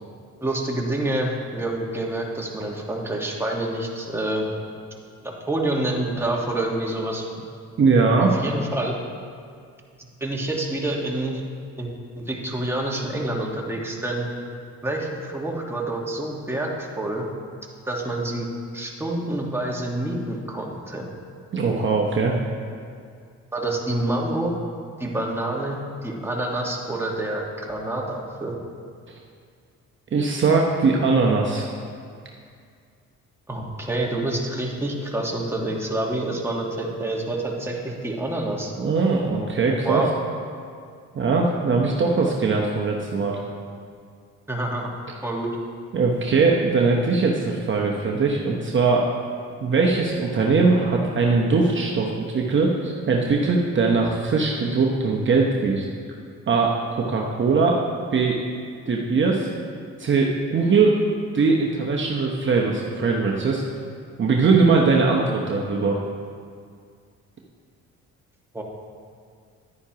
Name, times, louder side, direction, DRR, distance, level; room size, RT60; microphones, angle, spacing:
voice 1, 0.4-4.5 5.2-7.2 8.2-8.9 10.2-11.4 11.8-11.9 12.2-14.3 14.8-17.3 17.9-18.5 18.7-21.1 23.5-24.5 25.0-28.6 33.5-38.7 39.8-40.1 44.5-44.9 45.2-45.5 68.5-68.6, right 1 dB, 10° right, -1 dB, 1.4 m, -27 dB
voice 2, 7.8-8.3 21.5-22.3 30.1-31.6 38.8-40.0 41.1-43.4 45.9-49.1 49.6-55.8 56.5-57.8 58.1-58.4 58.9-59.5 60.0-61.0 61.3-63.6 64.2-66.0, right 4 dB, 40° right, -1 dB, 0.9 m, -20 dB
10.5 x 9.6 x 2.9 m, 2.2 s
cardioid pair, 90°, 30 cm